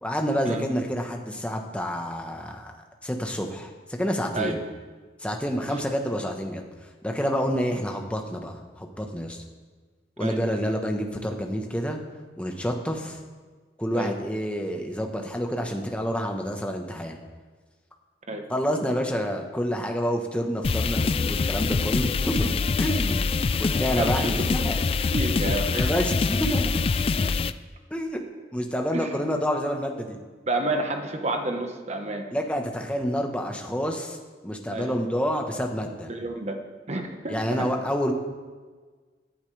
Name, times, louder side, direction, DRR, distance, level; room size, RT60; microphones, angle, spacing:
voice 1, 0.0-2.8 3.0-4.6 5.2-6.6 7.0-9.4 10.2-12.0 12.4-13.2 13.8-17.2 18.5-22.5 22.8-23.3 23.6-24.8 25.7-26.9 27.9-28.2 28.5-30.2 32.3-34.2 34.4-36.1 37.3-38.1, equal, 5° left, 2 dB, 1.1 m, -28 dB
sound 1, 20.6-27.5, left 4 dB, 35° left, 0.3 m, -24 dB
voice 2, 23.9-24.7 25.1-25.9 28.9-29.2 30.5-32.2 34.7-34.9 36.1-36.6 36.9-37.6, right 2 dB, 40° right, 4 dB, 1.2 m, -30 dB
17.5 x 11.0 x 3.4 m, 1.4 s
head